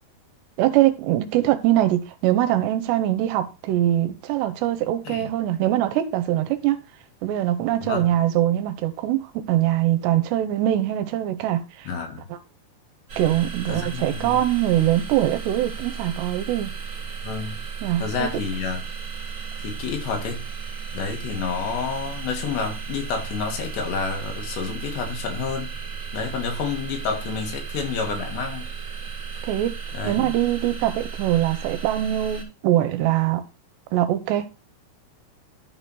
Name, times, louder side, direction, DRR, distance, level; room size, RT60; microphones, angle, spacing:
voice 1, 0.6-6.8 7.2-11.9 13.2-16.7 17.8-18.3 29.4-29.7 30.0-33.5 33.9-34.5, right 13 dB, 80° right, 3.0 m, -22 dB
voice 2, 7.8-8.1 11.9-12.3 13.7-14.4 17.2-17.6 18.0-18.8 19.6-20.5 20.9-25.8 26.1-28.7 29.9-30.3, left 5 dB, 80° left, 3.9 m, -29 dB
sound 1, 13.1-32.4, right 6 dB, 40° right, 1.7 m, -34 dB
12.5 x 4.5 x 4.0 m
omnidirectional pair, 4.9 m